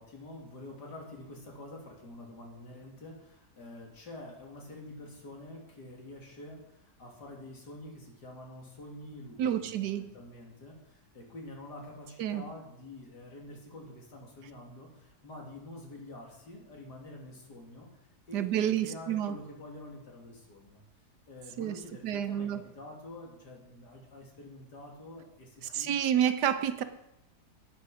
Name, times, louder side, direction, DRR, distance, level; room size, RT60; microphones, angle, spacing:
voice 1, 0.0-18.0 18.3-20.8 21.3-26.0, left 1 dB, 80° left, -1 dB, 3.1 m, -47 dB
voice 2, 9.4-10.1 12.2-12.4 18.3-19.4 21.6-21.7 22.0-22.6 25.7-26.8, right 10 dB, 80° right, 10 dB, 1.4 m, -29 dB
12.0 x 9.5 x 5.0 m, 0.84 s
omnidirectional pair, 1.8 m